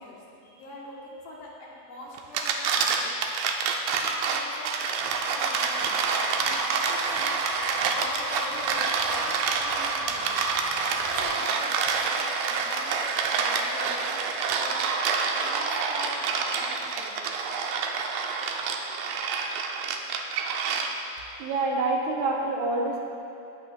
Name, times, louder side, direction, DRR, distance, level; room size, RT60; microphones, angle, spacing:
voice 1, 0.0-3.1 4.0-4.8 5.3-6.0 6.3-10.3 11.1-14.2 14.5-14.9 15.3-17.4, left 1 dB, 70° left, -5 dB, 3.2 m, -43 dB
sound 1, 2.2-21.2, right 5 dB, 85° right, 2.4 m, -27 dB
sound 2, 4.8-11.2, equal, 15° left, 2.7 m, -36 dB
voice 2, 21.4-23.0, right 2 dB, 70° right, -2 dB, 2.5 m, -26 dB
19.5 x 9.0 x 2.5 m, 2.7 s
omnidirectional pair, 3.9 m